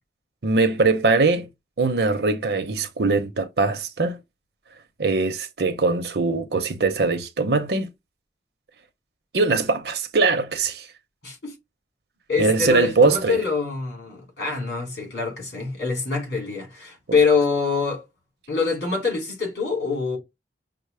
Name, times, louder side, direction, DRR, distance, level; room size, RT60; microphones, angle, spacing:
voice 1, 0.4-1.5 1.8-4.2 5.0-7.9 9.3-10.9 12.4-13.4, right 3 dB, 65° right, 0.8 m, -21 dB
voice 2, 11.2-11.5 12.3-18.0 18.5-20.2, left 4 dB, 70° left, 3.0 m, -25 dB
5.8 x 2.0 x 3.3 m
head